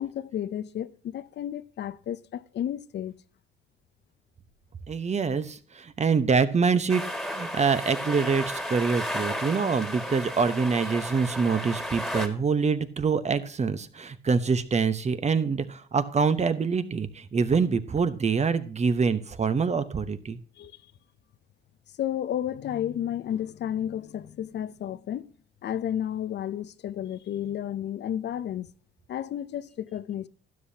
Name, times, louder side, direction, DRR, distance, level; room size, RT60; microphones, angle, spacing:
voice 1, 0.0-3.2 20.6-20.7 22.0-25.3 25.6-28.7 29.1-30.3, left 10 dB, 60° left, 0.6 m, -32 dB
voice 2, 4.9-20.4, right 5 dB, 35° right, 0.9 m, -25 dB
sound 1, 6.9-12.3, equal, ahead, 2.0 m, -33 dB
12.5 x 10.0 x 2.8 m
cardioid pair, 90°, 20 cm